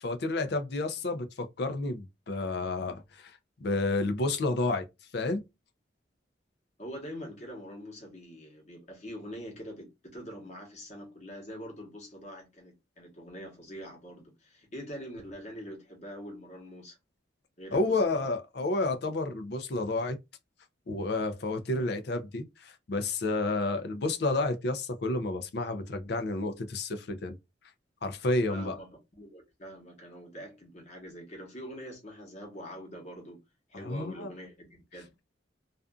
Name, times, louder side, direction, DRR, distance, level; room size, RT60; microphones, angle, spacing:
voice 1, 0.0-3.3 3.6-4.9 5.1-5.4 17.7-20.2 20.9-27.4 28.0-28.8 33.7-34.3, left 2 dB, 60° left, 0.5 m, -30 dB
voice 2, 6.8-17.0 17.6-18.3 28.5-33.4 33.7-35.1, equal, 40° left, 1.1 m, -44 dB
2.5 x 2.4 x 2.3 m
head